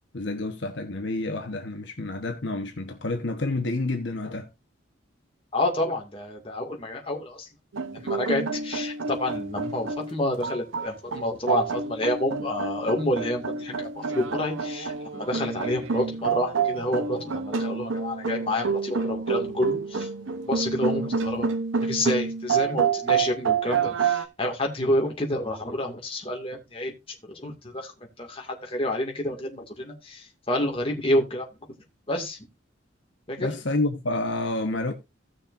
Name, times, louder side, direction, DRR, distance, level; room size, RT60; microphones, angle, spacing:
voice 1, 0.1-4.5 33.4-34.9, left 2 dB, 65° left, 1.2 m, -29 dB
voice 2, 5.5-7.5 7.9-20.1 20.4-21.5 21.8-26.9 27.2-31.5 32.1-32.5 33.3-33.5, left 1 dB, 30° left, 2.1 m, -29 dB
sound 1, 7.7-24.2, right 5 dB, 75° right, 0.9 m, -28 dB
16.5 x 6.5 x 2.6 m
head